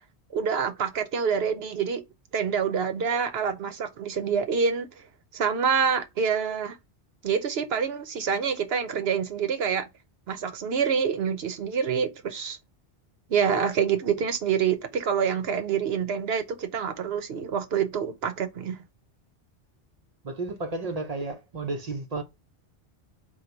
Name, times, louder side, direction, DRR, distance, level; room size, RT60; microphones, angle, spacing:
voice 1, 0.3-2.0 2.3-4.9 5.3-6.8 7.2-9.9 10.3-12.6 13.3-18.8, right 7 dB, 65° right, 0.9 m, -26 dB
voice 2, 20.2-22.2, right 3 dB, 40° right, 0.6 m, -32 dB
3.9 x 2.4 x 4.4 m
omnidirectional pair, 1.2 m